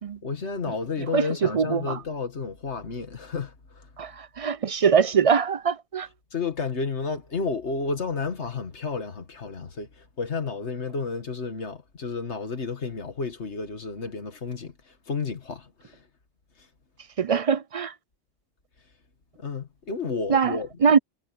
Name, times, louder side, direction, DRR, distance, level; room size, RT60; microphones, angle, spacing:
voice 1, 0.2-3.9 6.3-16.0 19.4-20.7, left 4 dB, 70° left, 2.1 m, -31 dB
voice 2, 1.1-2.0 4.0-6.1 17.2-17.9 20.3-21.0, right 6 dB, 50° right, 0.4 m, -23 dB
omnidirectional pair, 1.2 m